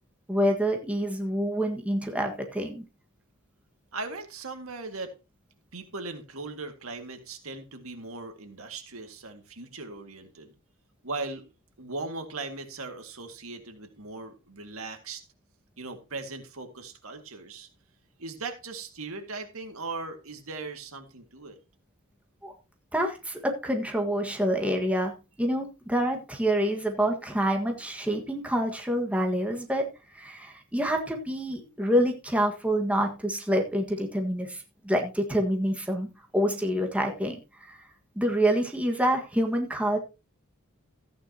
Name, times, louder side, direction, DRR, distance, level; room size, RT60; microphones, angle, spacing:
voice 1, 0.3-2.8 22.4-22.5 22.9-29.9 30.1-36.1 36.3-37.4 37.7-37.8 38.1-40.0, equal, 5° right, 2 dB, 1.6 m, -27 dB
voice 2, 3.9-5.1 5.7-10.5 11.0-11.4 11.8-15.2 15.8-17.7 18.2-21.6, right 3 dB, 75° right, 6 dB, 2.0 m, -38 dB
14.0 x 9.4 x 2.9 m, 0.30 s
head